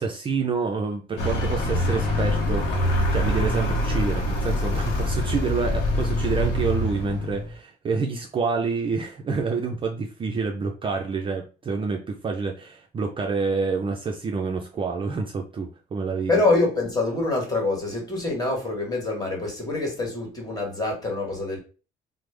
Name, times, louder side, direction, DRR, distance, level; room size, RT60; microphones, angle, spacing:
voice 1, 0.0-2.7 3.1-16.4, right 4 dB, 30° right, 0.4 m, -28 dB
Vehicle, 1.2-7.5, left 1 dB, 90° left, 0.7 m, -24 dB
voice 2, 16.3-21.6, left 2 dB, 20° left, 1.4 m, -25 dB
3.2 x 2.0 x 3.2 m
cardioid pair, 110°, 17 cm